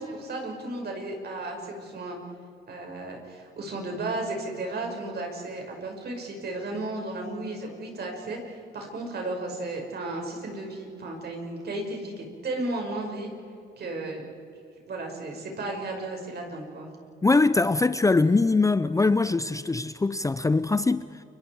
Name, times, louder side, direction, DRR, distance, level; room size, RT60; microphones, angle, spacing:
voice 1, 0.0-2.2 2.7-13.3 13.8-14.2 14.8-16.9, right 2 dB, 55° right, 5.8 m, -34 dB
voice 2, 17.2-21.2, left 3 dB, 15° left, 0.6 m, -22 dB
30.0 x 24.0 x 4.8 m
cardioid pair, 90°, 20 cm